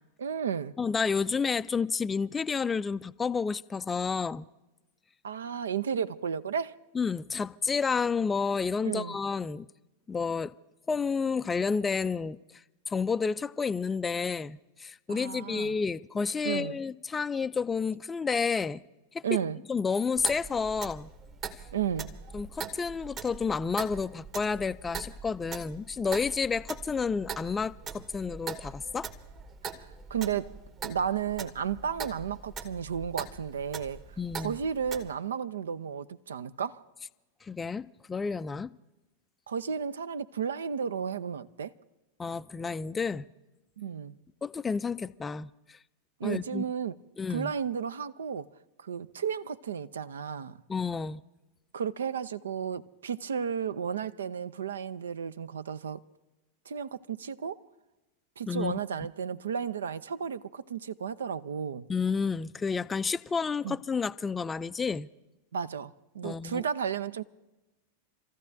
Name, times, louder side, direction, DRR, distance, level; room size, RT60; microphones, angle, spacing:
voice 1, 0.2-0.7 5.2-6.8 8.8-9.2 15.1-15.8 16.4-16.8 19.2-19.6 21.7-22.1 29.7-30.6 30.8-36.8 39.5-41.7 43.8-44.2 46.2-47.0 47.3-48.5 48.8-50.6 51.7-56.0 56.7-57.6 58.4-61.9 63.6-63.8 65.5-67.2, right 7 dB, 65° right, 0.6 m, -33 dB
voice 2, 0.8-4.5 6.9-9.7 10.1-10.5 10.9-12.4 12.9-18.8 19.1-19.2 19.7-21.1 22.3-29.1 34.2-34.6 37.4-38.7 42.2-43.2 44.4-45.8 46.2-46.6 47.2-47.5 50.7-51.2 58.5-58.8 61.9-65.1 66.2-66.6, left 5 dB, 15° left, 0.4 m, -30 dB
Clock, 20.2-35.1, right 5 dB, 30° right, 1.2 m, -42 dB
29.5 x 14.5 x 2.7 m
figure-of-eight pair, 90°, 0 cm